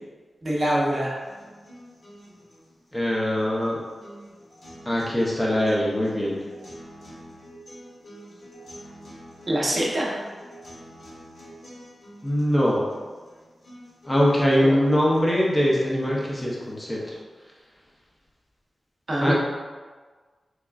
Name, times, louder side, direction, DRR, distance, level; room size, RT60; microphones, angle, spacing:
voice 1, 0.4-1.2 9.5-10.2 14.6-14.7 19.1-19.3, right 1 dB, 40° right, -4 dB, 0.6 m, -24 dB
sound 1, 1.2-17.2, equal, 55° left, 1.2 m, -47 dB
voice 2, 2.9-3.8 4.9-6.4 12.2-12.9 14.0-17.2 19.2-19.3, equal, 15° left, -4 dB, 0.5 m, -22 dB
3.5 x 3.1 x 2.3 m, 1.4 s
wide cardioid pair, 140°, 0 cm